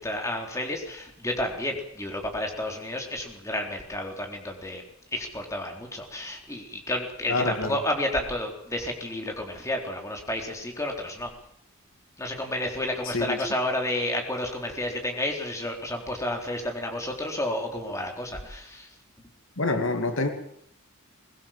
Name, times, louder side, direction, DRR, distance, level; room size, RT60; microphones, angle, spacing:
voice 1, 0.0-4.8 5.1-11.3 12.2-18.9, left 1 dB, 15° left, 2 dB, 4.0 m, -31 dB
voice 2, 7.3-7.8 13.0-13.4 19.6-20.3, left 3 dB, 65° left, 6 dB, 2.3 m, -27 dB
22.5 x 20.0 x 7.5 m, 0.67 s
head